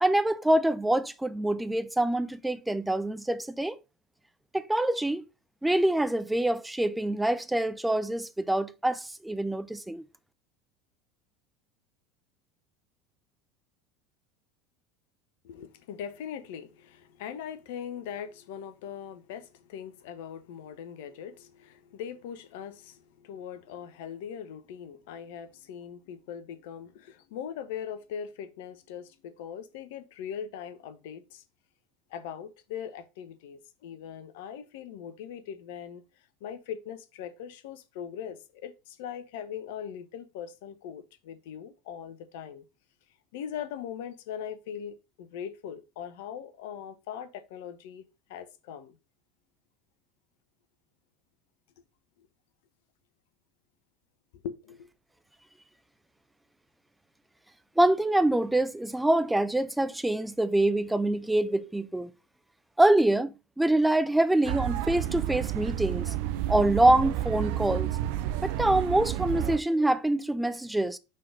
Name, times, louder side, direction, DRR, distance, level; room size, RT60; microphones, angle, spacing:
voice 1, 0.0-3.8 4.5-5.2 5.6-10.0 57.8-62.1 62.8-66.1 66.5-67.9 68.4-71.0, right 1 dB, 5° right, 0.7 m, -25 dB
voice 2, 15.4-31.4 32.1-36.0 36.4-42.6 43.3-48.0 48.3-49.0 52.2-52.3 54.4-54.9, left 8 dB, 65° left, 1.0 m, -40 dB
sound 1, 64.4-69.6, right 14 dB, 60° right, 0.7 m, -30 dB
5.7 x 3.9 x 5.0 m
hypercardioid pair, 75°, 0 cm